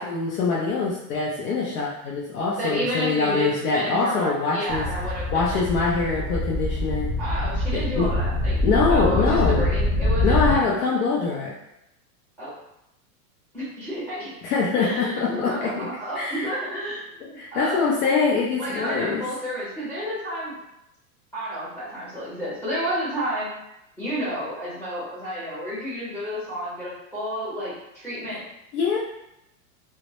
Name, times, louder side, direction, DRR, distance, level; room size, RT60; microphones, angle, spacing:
voice 1, 0.0-4.8 5.3-7.1 7.7-8.1 8.6-9.7 10.2-11.5 14.4-15.9 16.2-16.5 17.4-19.2 28.7-29.0, left 4 dB, 85° left, -4 dB, 0.6 m, -24 dB
voice 2, 2.5-5.7 7.2-8.5 8.9-10.7 12.4-12.5 13.5-14.3 14.8-17.8 18.6-20.6 21.3-23.5 24.0-28.4, equal, 5° left, -10 dB, 0.8 m, -31 dB
sound 1, 4.7-10.6, left 1 dB, 20° left, 0.3 m, -24 dB
2.1 x 2.0 x 2.8 m, 0.85 s
supercardioid pair, 170°, 44 cm